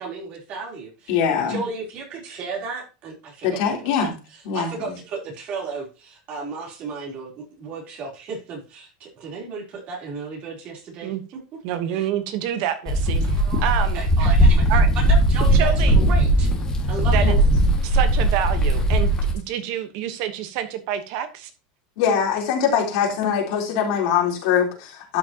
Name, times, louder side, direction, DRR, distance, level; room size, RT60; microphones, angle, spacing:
voice 1, 0.0-1.2 1.5-3.6 4.0-4.1 4.5-11.1 11.9-12.1 13.3-14.7 15.0-16.5 16.9-17.3, right 4 dB, 40° right, -1 dB, 3.6 m, -34 dB
voice 2, 1.1-1.6 3.4-4.1 4.5-4.9 17.2-17.4 22.0-25.2, left 7 dB, 65° left, 0 dB, 3.6 m, -22 dB
voice 3, 11.6-14.3 14.7-14.9 15.5-16.0 17.1-17.4 17.8-21.5, right 10 dB, 55° right, 9 dB, 1.2 m, -27 dB
sound 1, 12.9-19.3, right 1 dB, 15° left, 1.9 m, -18 dB
12.0 x 6.1 x 2.9 m, 0.32 s
supercardioid pair, 160°, 4 cm